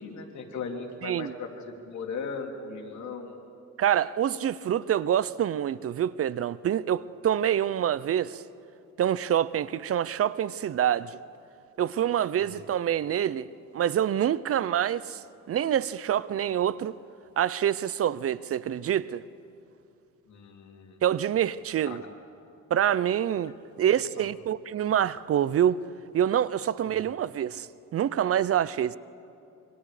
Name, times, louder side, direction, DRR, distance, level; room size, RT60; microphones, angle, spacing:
voice 1, 0.0-3.4 12.4-12.6 20.3-21.0 21.8-22.0 23.7-23.9 24.2-24.3 26.8-26.9, left 4 dB, 65° left, 3.0 m, -38 dB
voice 2, 1.0-1.3 3.8-8.4 9.0-11.2 11.8-13.5 13.7-15.2 15.5-17.0 17.4-19.2 21.0-22.0 22.7-25.8 26.1-27.7 27.9-29.0, right 10 dB, 50° right, 0.5 m, -26 dB
26.5 x 24.0 x 5.0 m
cardioid pair, 90°, 30 cm